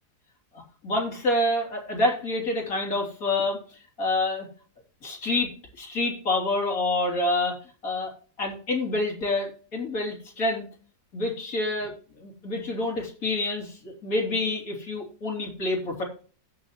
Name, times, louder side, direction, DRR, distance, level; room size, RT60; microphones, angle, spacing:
voice 1, 0.5-4.5 5.0-7.6 7.8-8.1 8.4-10.7 11.1-11.9 12.2-16.0, left 2 dB, 60° left, -1 dB, 3.8 m, -27 dB
17.0 x 5.9 x 3.1 m, 0.39 s
omnidirectional pair, 1.7 m